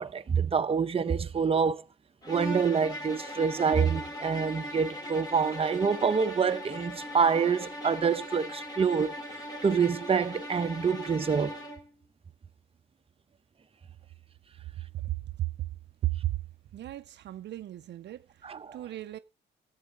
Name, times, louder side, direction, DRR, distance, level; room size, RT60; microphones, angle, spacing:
voice 1, 0.0-1.8 2.3-11.5 18.4-18.8, right 6 dB, 30° right, 0.7 m, -27 dB
sound 1, 2.2-11.9, equal, 20° left, 2.7 m, -39 dB
voice 2, 14.9-15.5 16.0-16.3 16.7-19.2, right 15 dB, 60° right, 0.5 m, -34 dB
13.0 x 8.3 x 3.7 m
cardioid pair, 90°, 20 cm